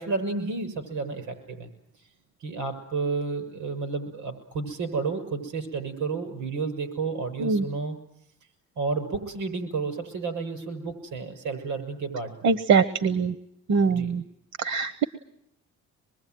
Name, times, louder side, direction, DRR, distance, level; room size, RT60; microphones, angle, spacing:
voice 1, 0.0-1.7 2.4-8.0 8.8-12.3 13.9-14.1, right 4 dB, 90° right, 10 dB, 6.5 m, -31 dB
voice 2, 12.4-13.3 13.7-14.2 14.6-15.0, right 5 dB, 65° right, 11 dB, 1.0 m, -22 dB
24.5 x 22.0 x 9.3 m, 0.79 s
cardioid pair, 90°, 30 cm